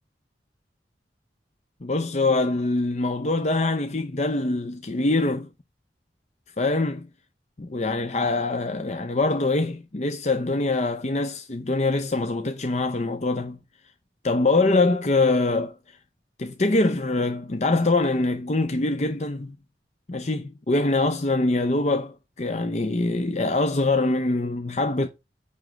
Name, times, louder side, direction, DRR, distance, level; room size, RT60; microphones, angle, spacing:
voice 1, 1.8-5.5 6.6-7.1 7.6-13.6 14.2-15.8 16.4-19.6 20.1-25.1, left 2 dB, 40° left, 0.7 m, -24 dB
9.1 x 3.5 x 6.2 m
head